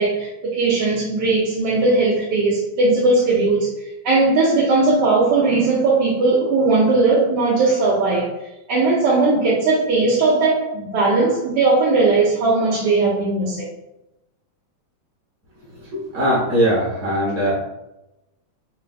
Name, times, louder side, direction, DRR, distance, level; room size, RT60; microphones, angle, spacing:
voice 1, 0.0-3.7 4.0-13.7, right 3 dB, 75° right, -10 dB, 2.6 m, -18 dB
voice 2, 15.9-17.6, equal, 45° right, -6 dB, 1.2 m, -20 dB
6.4 x 2.6 x 2.5 m, 0.94 s
omnidirectional pair, 3.4 m